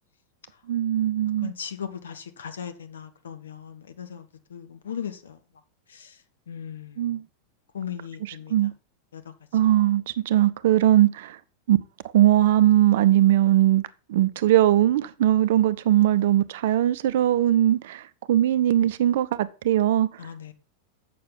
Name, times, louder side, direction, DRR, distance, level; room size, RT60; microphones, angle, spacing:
voice 1, 0.7-1.5 7.0-7.2 8.5-8.7 9.5-11.4 11.7-11.8 12.1-13.8 14.1-20.1, right 13 dB, 55° right, 0.6 m, -20 dB
voice 2, 1.4-5.4 5.9-6.2 6.5-7.2 7.7-8.7 9.1-9.3 20.2-20.5, left 8 dB, 65° left, 1.3 m, -38 dB
7.6 x 6.8 x 5.8 m
figure-of-eight pair, 90°, 0 cm